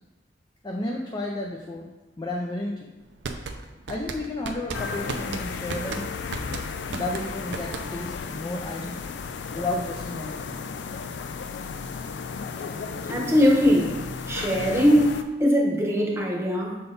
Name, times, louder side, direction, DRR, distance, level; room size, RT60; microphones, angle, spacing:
voice 1, 0.6-1.9 2.2-2.7 3.9-6.1 6.9-9.2 9.5-10.6, left 2 dB, 25° left, -1 dB, 0.5 m, -32 dB
sound 1, 3.0-8.2, right 4 dB, 85° right, 0.5 m, -35 dB
sound 2, 4.7-15.2, left 5 dB, 80° left, 0.4 m, -34 dB
voice 2, 13.0-14.0 14.3-16.8, equal, 15° right, -1 dB, 1.0 m, -21 dB
6.8 x 3.8 x 3.9 m, 1.2 s
head